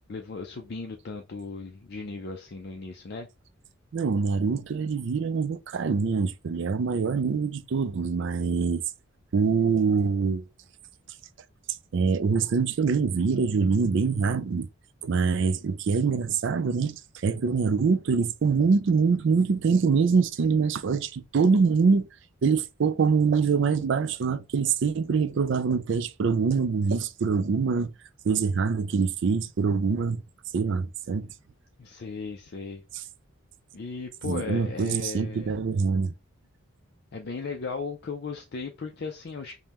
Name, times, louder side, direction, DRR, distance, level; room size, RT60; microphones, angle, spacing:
voice 1, 0.1-3.3 31.8-32.8 33.7-35.5 37.1-39.5, left 4 dB, 50° left, 0.4 m, -36 dB
voice 2, 3.9-8.8 9.3-10.5 11.9-14.7 15.0-22.1 22.4-27.9 28.2-30.2 30.5-31.3 32.9-33.0 34.2-36.1, right 5 dB, 55° right, 0.4 m, -24 dB
5.2 x 2.1 x 2.9 m
head